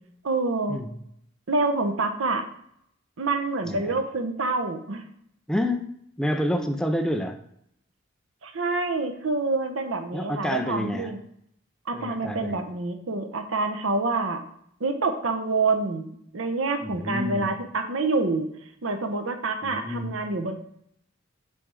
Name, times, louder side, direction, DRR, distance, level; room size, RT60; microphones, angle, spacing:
voice 1, 0.2-0.8 1.5-2.4 3.2-5.0 8.4-11.2 11.9-14.4 14.8-18.5 18.8-20.5, right 3 dB, 75° right, 6 dB, 0.8 m, -27 dB
voice 2, 3.6-4.0 5.5-7.4 10.1-11.1 11.9-12.7 16.8-17.5 19.6-20.2, left 1 dB, 5° left, 6 dB, 0.4 m, -29 dB
7.1 x 3.4 x 4.7 m, 0.71 s
head